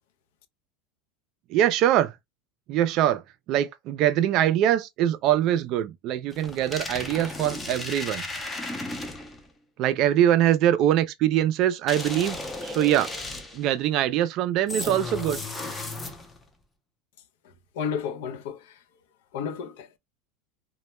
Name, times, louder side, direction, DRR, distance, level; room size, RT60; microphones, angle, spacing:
voice 1, 1.5-2.1 2.7-3.2 3.5-8.3 9.8-13.1 13.5-15.4, right 11 dB, 45° right, 0.3 m, -23 dB
sound 1, 6.3-9.5 11.9-13.7 14.7-16.4, left 2 dB, 10° left, 0.5 m, -35 dB
voice 2, 17.8-18.6 19.3-20.0, left 7 dB, 75° left, 0.5 m, -31 dB
2.1 x 2.1 x 2.9 m
supercardioid pair, 140°, 0 cm